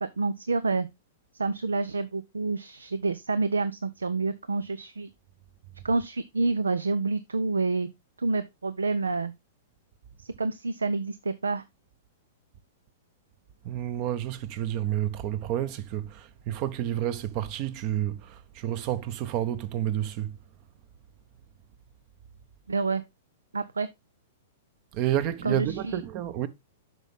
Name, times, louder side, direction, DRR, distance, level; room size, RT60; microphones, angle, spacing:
voice 1, 0.0-0.9 1.3-5.1 5.8-7.9 8.2-9.3 10.2-11.6 22.7-23.0 23.5-23.9 25.4-26.0, right 3 dB, 85° right, 0.5 m, -28 dB
voice 2, 13.6-20.4 24.9-26.5, right 11 dB, 45° right, 0.9 m, -30 dB
8.1 x 6.0 x 3.5 m
figure-of-eight pair, 105°, 0 cm